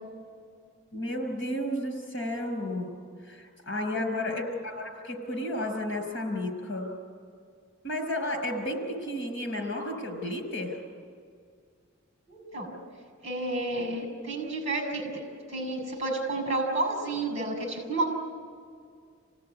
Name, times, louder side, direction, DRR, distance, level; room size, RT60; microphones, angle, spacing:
voice 1, 0.9-2.9 3.3-6.9 7.8-10.8, left 1 dB, 55° left, 4 dB, 5.6 m, -32 dB
voice 2, 3.9-4.4 12.3-12.8 13.2-15.2 15.5-18.1, right 2 dB, 30° right, 3 dB, 6.5 m, -31 dB
27.0 x 18.0 x 9.8 m, 2.2 s
head